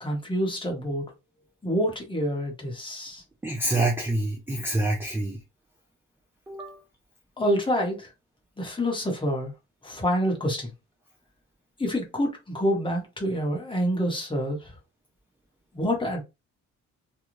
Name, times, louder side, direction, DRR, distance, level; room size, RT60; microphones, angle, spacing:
voice 1, 0.0-1.1 1.6-3.2 7.4-8.1 8.6-9.5 9.8-10.7 11.8-14.7 15.7-16.2, equal, 15° left, 1.0 m, -27 dB
voice 2, 3.4-5.4 6.5-6.8, right 2 dB, 10° right, 0.4 m, -27 dB
2.6 x 2.3 x 3.0 m
cardioid pair, 140°, 29 cm